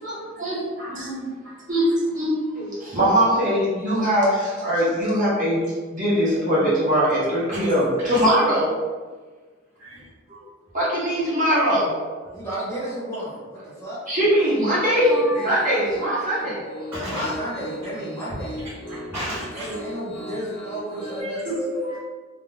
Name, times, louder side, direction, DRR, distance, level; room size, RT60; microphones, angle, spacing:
voice 1, 0.0-1.3 1.7-5.6 5.9-8.7 10.7-12.0 14.1-17.0 21.4-21.6, equal, 40° right, -8 dB, 1.0 m, -22 dB
voice 2, 12.3-14.0 17.0-18.6 19.5-21.6, right 1 dB, 10° left, -10 dB, 0.9 m, -32 dB
Piano, 14.4-21.2, equal, 55° left, 0.6 m, -38 dB
voice 3, 14.9-15.5 16.9-17.3 18.9-19.7 21.1-22.0, equal, 10° right, -13 dB, 0.7 m, -33 dB
2.5 x 2.2 x 3.1 m, 1.4 s
head